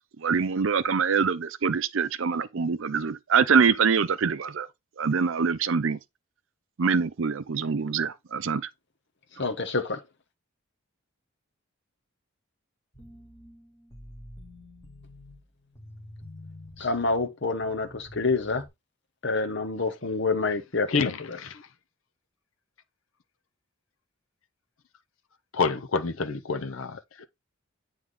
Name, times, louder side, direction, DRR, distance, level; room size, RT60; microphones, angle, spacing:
voice 1, 0.2-4.7 5.0-6.0 6.8-8.7, right 5 dB, 65° right, 0.5 m, -24 dB
voice 2, 9.4-10.0 16.8-18.6 19.2-20.9 21.3-21.4, left 3 dB, 55° left, 1.1 m, -27 dB
sound 1, 12.9-18.7, left 1 dB, 10° left, 2.3 m, -48 dB
voice 3, 20.9-21.6 25.5-27.2, left 4 dB, 75° left, 0.7 m, -28 dB
7.9 x 3.5 x 3.7 m
head